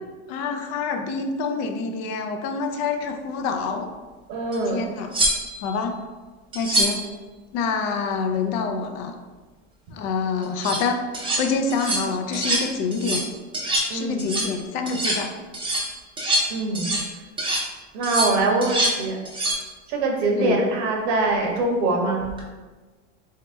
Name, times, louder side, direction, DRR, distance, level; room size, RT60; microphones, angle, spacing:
voice 1, 0.3-3.9 4.7-5.1 5.6-6.0 6.5-7.0 7.5-9.1 9.9-11.0 11.4-13.2 13.9-15.3 20.4-20.6, left 4 dB, 50° left, 5 dB, 0.5 m, -26 dB
voice 2, 4.3-4.8 13.9-14.3 16.5-16.9 17.9-19.2 19.9-22.2, right 2 dB, 70° right, 0 dB, 1.0 m, -23 dB
sound 1, 4.5-4.6 5.1-5.7 6.5-7.1 10.4-10.8 11.1-11.4 11.7-12.1 12.3-12.7 12.9-13.3 13.5-13.9 14.2-14.5 14.9-15.2 15.5-17.1 17.4-17.7 18.0-19.0 19.2-19.6 22.2-22.4, right 1 dB, 15° right, 0.7 m, -25 dB
3.1 x 2.8 x 3.4 m, 1.3 s
supercardioid pair, 130°, 33 cm